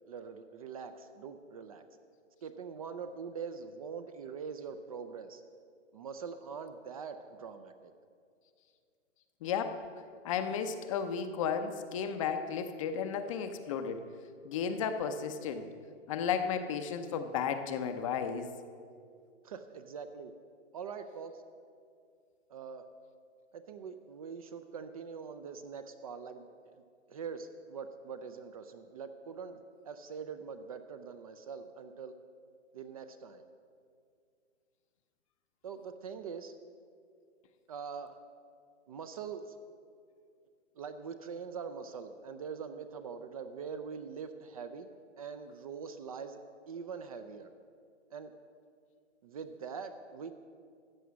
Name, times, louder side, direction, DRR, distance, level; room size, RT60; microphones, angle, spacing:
voice 1, 0.1-1.8 2.4-5.4 5.9-7.9 19.4-20.3 20.7-21.4 22.5-22.9 23.5-26.5 27.1-32.1 32.7-33.4 35.6-36.5 37.7-38.1 38.9-39.6 40.8-44.9 45.2-46.4 46.7-47.5 48.1-48.3 49.2-50.3, right 6 dB, 30° right, 9 dB, 0.5 m, -43 dB
voice 2, 9.4-9.8 10.2-14.0 14.4-15.7 16.1-18.5, left 7 dB, 25° left, 8 dB, 0.6 m, -33 dB
14.0 x 8.1 x 6.2 m, 2.3 s
hypercardioid pair, 145°, 37 cm